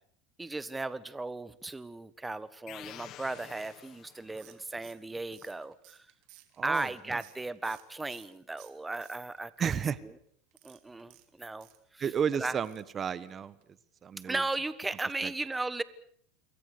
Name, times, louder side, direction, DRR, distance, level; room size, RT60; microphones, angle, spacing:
voice 1, 0.4-6.1 6.6-9.5 10.6-11.7 11.9-12.0 12.3-12.5 14.2-15.8, right 2 dB, 10° right, 16 dB, 1.3 m, -36 dB
sound 1, 2.7-4.6, left 13 dB, 45° left, 1.1 m, -49 dB
sound 2, 4.4-8.3 8.6-9.6 10.5-12.2 12.6-12.9 13.2-13.3 13.6-13.7, right 18 dB, 60° right, 3.2 m, -57 dB
voice 2, 6.6-7.2 9.6-10.0 12.0-13.6 14.0-14.4 15.2-15.3, right 7 dB, 30° right, 17 dB, 1.2 m, -32 dB
28.0 x 22.5 x 6.8 m, 0.63 s
supercardioid pair, 120°, 0 cm